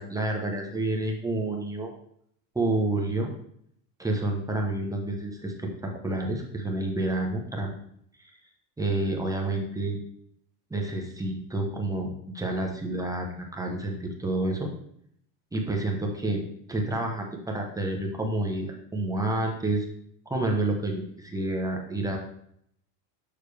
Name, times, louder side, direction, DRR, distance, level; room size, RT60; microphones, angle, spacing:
voice 1, 0.0-1.9 2.5-3.3 4.0-7.7 8.2-8.4 8.8-10.0 10.7-14.7 15.5-16.4 16.7-19.9 20.3-22.2, right 2 dB, 5° right, 0 dB, 0.8 m, -29 dB
6.7 x 6.4 x 3.3 m, 0.69 s
supercardioid pair, 135°, 49 cm